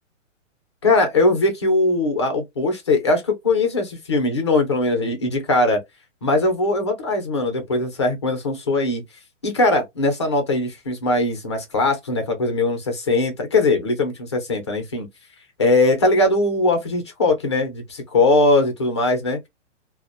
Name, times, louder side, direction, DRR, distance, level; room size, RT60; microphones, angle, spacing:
voice 1, 0.8-5.8 6.2-9.0 9.4-15.1 15.6-19.5, left 2 dB, 25° left, 0.4 m, -20 dB
2.6 x 2.0 x 2.3 m
hypercardioid pair, 165°, 38 cm